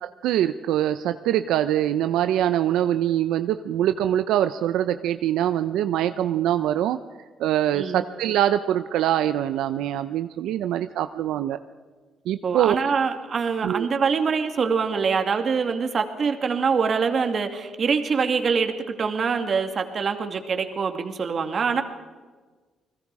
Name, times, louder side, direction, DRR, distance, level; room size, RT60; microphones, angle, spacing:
voice 1, 0.0-7.0 7.4-11.6 12.3-12.8 13.6-13.9, right 11 dB, 90° right, 10 dB, 0.7 m, -23 dB
voice 2, 12.4-21.8, right 5 dB, 50° right, 6 dB, 2.5 m, -24 dB
30.0 x 20.5 x 4.9 m, 1.4 s
cardioid pair, 90°, 0 cm